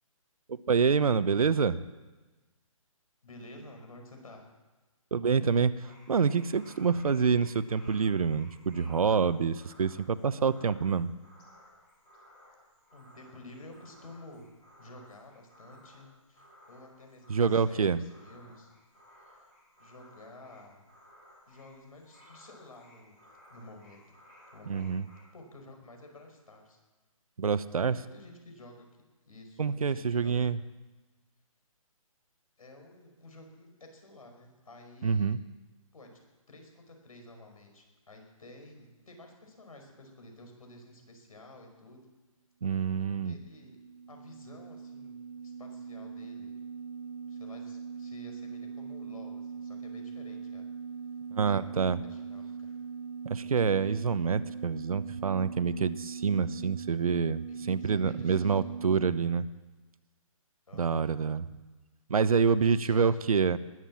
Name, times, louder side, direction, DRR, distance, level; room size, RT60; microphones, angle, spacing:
voice 1, 0.5-1.8 5.1-5.7 6.1-11.1 17.3-18.0 24.7-25.0 27.4-28.0 29.6-30.6 35.0-35.4 42.6-43.4 51.3-52.0 53.2-59.5 60.7-61.5 62.1-63.6, right 6 dB, 85° right, 15 dB, 0.8 m, -27 dB
voice 2, 3.2-4.4 12.9-14.5 14.8-18.7 19.2-19.5 19.8-20.8 21.5-23.2 23.5-25.0 25.3-26.8 27.5-28.9 29.2-30.5 32.6-35.4 35.9-36.2 36.5-42.1 43.2-43.8 44.1-45.2 45.4-46.5 47.2-50.7 51.4-51.6 52.0-52.8 57.5-58.8 60.7-61.1 62.7-63.3, left 2 dB, 80° left, 3 dB, 5.2 m, -51 dB
sound 1, 5.8-25.2, left 1 dB, ahead, 0.4 m, -58 dB
sound 2, 43.0-59.2, right 6 dB, 40° right, 0.6 m, -41 dB
20.5 x 7.6 x 7.4 m, 1.2 s
hypercardioid pair, 175°, 18 cm